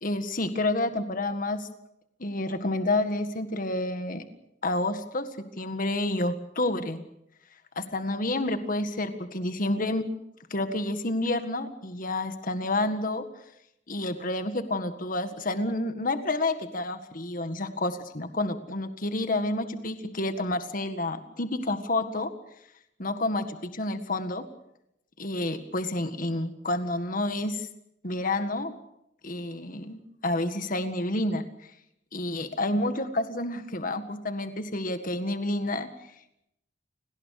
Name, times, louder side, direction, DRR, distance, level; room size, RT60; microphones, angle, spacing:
voice 1, 0.0-1.7 2.2-4.2 4.6-5.3 5.6-7.0 7.8-10.0 10.5-13.3 13.9-22.3 23.0-24.4 25.2-27.7 28.0-28.7 29.2-31.5 32.1-35.9, left 2 dB, 45° left, 9 dB, 1.8 m, -29 dB
29.0 x 19.0 x 6.6 m, 0.81 s
head